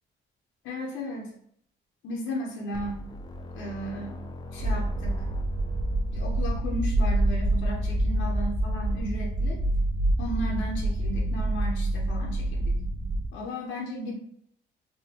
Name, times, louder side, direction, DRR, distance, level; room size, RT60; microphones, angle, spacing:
voice 1, 0.6-1.3 2.0-3.0 3.6-4.2 4.5-5.3 6.1-9.6 10.2-12.7 13.3-14.1, equal, 80° left, -1 dB, 0.6 m, -35 dB
sound 1, 2.7-6.7, left 2 dB, 20° left, 0.4 m, -42 dB
sound 2, 4.6-13.3, right 1 dB, 55° right, 0.4 m, -27 dB
3.4 x 2.2 x 2.8 m, 0.68 s
cardioid pair, 90°, 20 cm